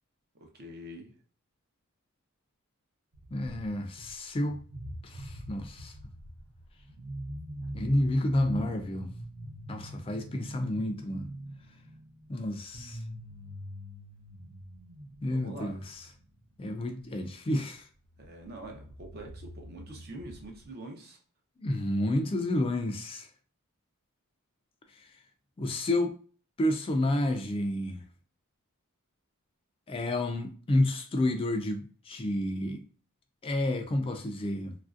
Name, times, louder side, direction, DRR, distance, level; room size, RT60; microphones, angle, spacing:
voice 1, 0.4-1.1 15.3-15.8 18.2-21.2, right 1 dB, 45° right, 0.7 m, -45 dB
sound 1, 3.1-4.1 4.4-16.5 17.7-17.8 18.0-20.7, right 1 dB, 90° right, 0.7 m, -43 dB
voice 2, 3.3-4.6 5.0-5.9 7.7-9.1 9.7-11.3 12.3-13.0 15.2-16.1 16.6-17.9 21.6-23.3 24.9-25.1 25.6-26.2 26.6-28.0 29.9-32.8 33.4-34.7, left 1 dB, 25° left, 0.3 m, -30 dB
3.1 x 2.5 x 2.4 m
head